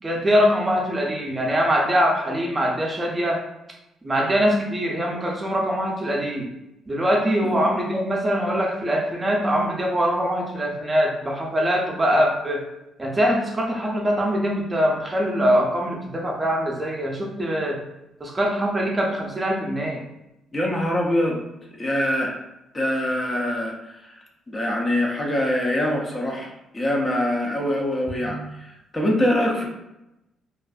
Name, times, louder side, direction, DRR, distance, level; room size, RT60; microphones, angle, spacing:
voice 1, 0.0-3.4 4.0-6.5 6.9-12.6 13.0-17.8 18.2-20.0, equal, 25° right, -1 dB, 0.5 m, -23 dB
voice 2, 20.5-21.4 21.8-22.3 22.7-29.7, left 1 dB, 30° left, 0 dB, 0.5 m, -24 dB
2.5 x 2.4 x 2.3 m, 0.90 s
cardioid pair, 90°, 0 cm